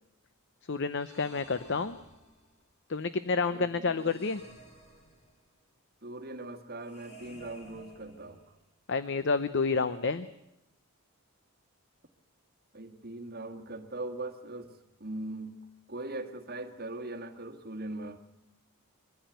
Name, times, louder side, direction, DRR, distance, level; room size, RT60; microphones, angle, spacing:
voice 1, 0.7-2.0 2.9-4.4 8.9-10.3, left 4 dB, 55° left, 12 dB, 0.7 m, -29 dB
sound 1, 1.0-2.7 4.0-5.6 6.8-8.7, right 1 dB, 30° left, 2.8 m, -54 dB
voice 2, 3.5-4.2 6.0-8.6 12.7-15.6 15.9-18.2, right 2 dB, 45° right, 5 dB, 1.8 m, -40 dB
22.5 x 14.5 x 9.2 m, 0.88 s
head